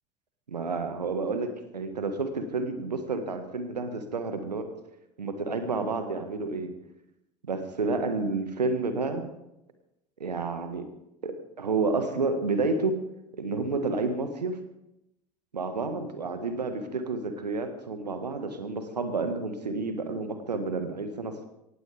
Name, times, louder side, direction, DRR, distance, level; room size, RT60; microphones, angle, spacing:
voice 1, 0.5-4.7 5.2-6.7 7.4-9.2 10.2-10.9 11.2-13.0 13.4-14.6 15.5-21.5, right 3 dB, 80° right, 8 dB, 1.7 m, -30 dB
19.0 x 15.0 x 3.5 m, 0.87 s
figure-of-eight pair, 70°, 21 cm